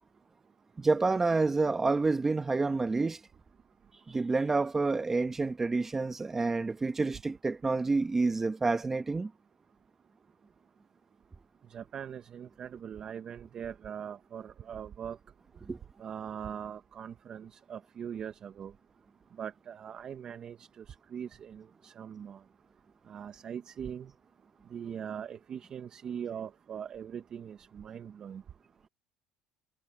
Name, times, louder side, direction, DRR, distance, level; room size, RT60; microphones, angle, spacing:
voice 1, 0.8-3.2 4.1-9.3 15.6-15.8, right 3 dB, 15° right, 1.5 m, -28 dB
voice 2, 11.7-15.2 16.0-18.7 19.4-22.4 23.1-24.1 24.7-28.4, right 8 dB, 40° right, 1.5 m, -41 dB
cardioid pair, 115°, 2 cm